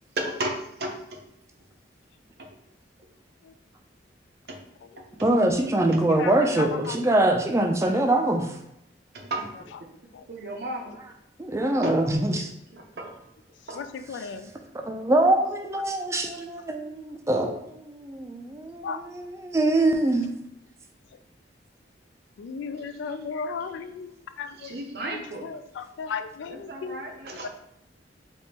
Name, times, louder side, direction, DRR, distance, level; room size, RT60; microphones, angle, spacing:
voice 1, 0.1-1.3 2.4-2.6 4.5-4.7 5.0-5.3 5.9-6.1 7.8-7.9 9.1-9.9 10.3-11.0 11.8-12.1 12.7-13.2 13.7-13.9 22.8-23.3 23.6-23.9 24.5-25.5 26.5-27.5, right 1 dB, 60° right, 0.6 m, -35 dB
voice 2, 5.2-8.6 11.4-12.5 14.7-20.3, right 1 dB, 15° right, 0.3 m, -24 dB
voice 3, 6.2-7.0 10.1-10.2 13.8-14.5 18.8-19.0 22.4-24.1 24.4-24.8 25.1-27.0 27.3-27.5, left 5 dB, 85° left, 0.3 m, -35 dB
3.5 x 3.0 x 2.8 m
head